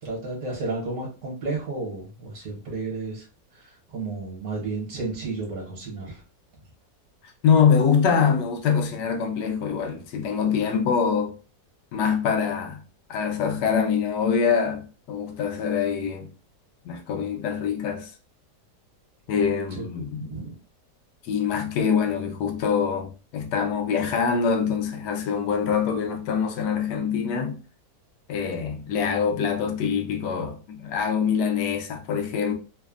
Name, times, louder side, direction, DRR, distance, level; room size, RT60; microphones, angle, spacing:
voice 1, 0.0-3.3 3.5-6.2 19.7-19.8 20.1-20.5, right 3 dB, 65° right, 1.3 m, -32 dB
voice 2, 7.4-11.3 11.9-12.8 13.1-16.3 16.8-18.1 19.3-20.3 21.2-27.6 28.3-32.5, left 6 dB, 80° left, 1.2 m, -24 dB
3.2 x 2.0 x 2.3 m
omnidirectional pair, 1.8 m